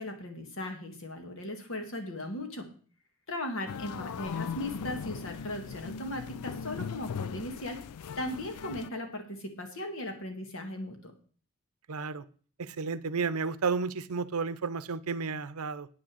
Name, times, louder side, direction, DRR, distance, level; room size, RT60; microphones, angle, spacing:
voice 1, 0.0-2.7 3.3-7.8 8.2-11.1, left 1 dB, 60° left, 1.9 m, -38 dB
sound 1, 3.7-8.9, left 6 dB, 85° left, 0.4 m, -39 dB
voice 2, 11.9-12.2 12.6-15.9, right 5 dB, 75° right, 0.7 m, -32 dB
9.2 x 6.4 x 7.6 m
head